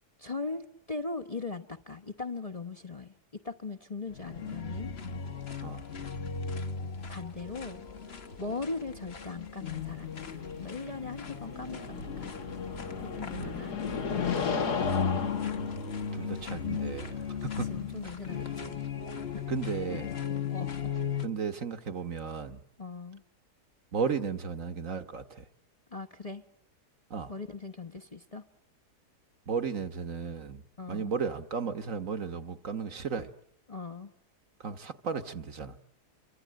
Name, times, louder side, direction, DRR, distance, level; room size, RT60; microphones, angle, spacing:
voice 1, 0.2-3.1 3.4-4.9 7.1-7.9 8.4-10.3 10.6-12.4 13.0-13.7 17.7-18.8 19.3-19.5 19.9-20.0 20.5-20.9 22.8-23.2 25.9-26.4 27.3-28.4 30.8-31.1 33.7-34.1, left 3 dB, 25° left, 5 dB, 1.1 m, -39 dB
sound 1, 4.1-21.3, left 6 dB, 40° left, 1.5 m, -36 dB
sound 2, 7.5-16.5, left 2 dB, 65° left, 3.3 m, -53 dB
sound 3, 9.7-18.5, left 5 dB, 85° left, 2.4 m, -37 dB
voice 2, 16.1-17.7 19.5-20.1 21.2-22.6 23.9-25.4 27.1-27.3 29.5-30.6 30.9-33.3 34.6-35.8, right 6 dB, 55° right, 8 dB, 1.6 m, -34 dB
28.0 x 24.5 x 7.7 m, 0.78 s
omnidirectional pair, 1.7 m